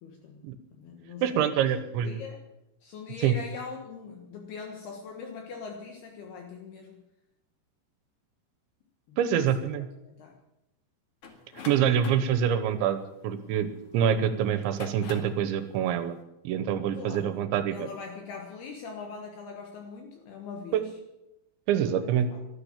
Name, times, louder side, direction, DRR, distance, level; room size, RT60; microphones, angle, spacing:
voice 1, 0.0-0.4 0.7-1.7 2.0-2.4 2.8-7.0 9.1-9.7 10.1-10.3 16.9-17.4 17.7-20.9 22.0-22.1 22.3-22.4, left 5 dB, 65° left, 2 dB, 3.2 m, -42 dB
voice 2, 1.2-2.2 3.2-3.4 9.2-9.9 11.7-13.7 13.9-16.2 16.5-17.9 20.7-20.8 21.7-22.3, right 9 dB, 80° right, 11 dB, 3.4 m, -26 dB
sound 1, 11.2-13.9 14.5-15.4, left 4 dB, 45° left, 2.1 m, -43 dB
13.5 x 12.5 x 8.5 m, 0.92 s
omnidirectional pair, 5.2 m